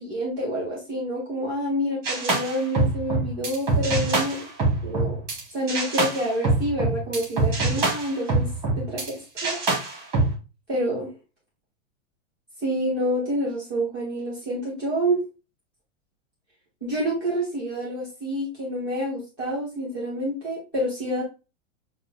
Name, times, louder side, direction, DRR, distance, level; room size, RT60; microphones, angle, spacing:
voice 1, 0.0-4.4 4.8-5.2 5.5-8.5 8.7-9.6 10.7-11.1 12.6-15.2 16.8-21.2, equal, 5° left, -9 dB, 0.4 m, -28 dB
sound 1, 2.0-5.4 5.7-9.1 9.4-10.3, right 2 dB, 10° right, 0.8 m, -25 dB
6.7 x 2.3 x 2.4 m, 0.30 s
supercardioid pair, 180°, 40 cm